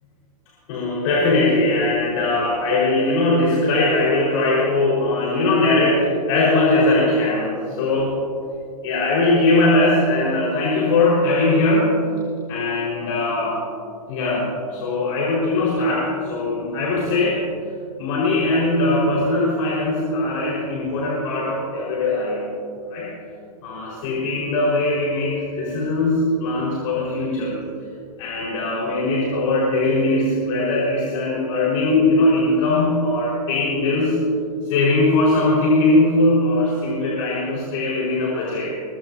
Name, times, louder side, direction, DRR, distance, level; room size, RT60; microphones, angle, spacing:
voice 1, 0.7-8.1 8.8-12.0 12.5-13.6 14.1-17.4 18.0-22.5 22.9-23.1 23.6-27.6 28.2-34.2 34.6-38.7, left 2 dB, 55° left, -6 dB, 4.6 m, -20 dB
23.0 x 17.5 x 2.7 m, 2.5 s
hypercardioid pair, 115°, 20 cm